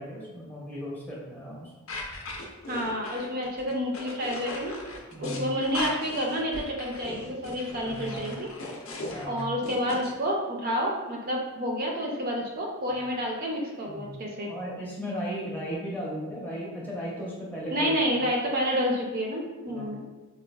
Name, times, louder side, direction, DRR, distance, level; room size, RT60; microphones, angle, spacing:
voice 1, 0.0-1.9 5.1-5.5 7.8-8.4 9.1-9.5 13.9-14.1 14.5-18.2 19.7-19.9, equal, 10° left, -5 dB, 0.6 m, -36 dB
sound 1, 1.9-10.1, left 2 dB, 65° left, 0.5 m, -38 dB
voice 2, 2.7-4.8 5.2-8.5 9.3-14.5 17.7-20.0, equal, 40° right, -1 dB, 0.4 m, -29 dB
4.2 x 2.3 x 2.2 m, 1.2 s
head